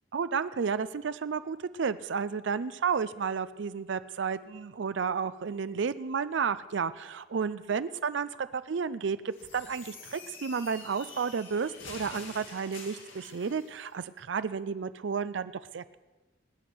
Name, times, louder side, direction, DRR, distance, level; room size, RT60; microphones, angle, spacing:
voice 1, 0.1-16.0, right 6 dB, 70° right, 14 dB, 0.4 m, -32 dB
sound 1, 9.3-13.7, left 4 dB, 85° left, 2.6 m, -47 dB
20.0 x 8.4 x 6.1 m, 1.2 s
head